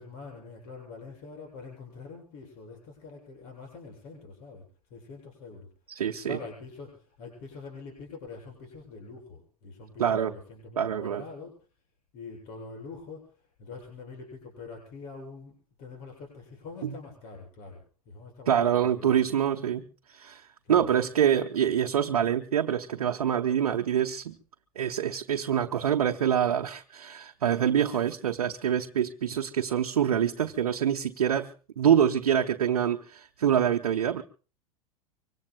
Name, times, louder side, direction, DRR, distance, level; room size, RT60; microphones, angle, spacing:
voice 1, 0.0-11.6 12.1-19.2 20.6-21.0, left 4 dB, 50° left, 0 dB, 7.8 m, -45 dB
voice 2, 5.9-6.4 10.0-10.3 10.8-11.2 16.8-16.9 18.5-24.3 24.8-31.5 31.8-34.2, right 9 dB, 75° right, 3 dB, 1.0 m, -26 dB
25.0 x 24.0 x 2.3 m, 0.37 s
figure-of-eight pair, 90°, 19 cm